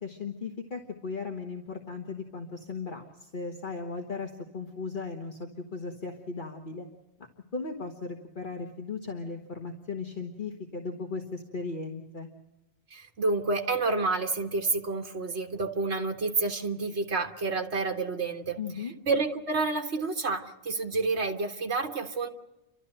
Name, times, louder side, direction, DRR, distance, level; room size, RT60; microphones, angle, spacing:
voice 1, 0.0-6.9 7.5-12.3 18.6-18.9, left 4 dB, 50° left, 2 dB, 1.6 m, -37 dB
voice 2, 12.9-18.6 19.1-22.3, right 3 dB, 85° right, 4 dB, 1.9 m, -29 dB
29.5 x 13.0 x 7.8 m, 1.1 s
omnidirectional pair, 1.1 m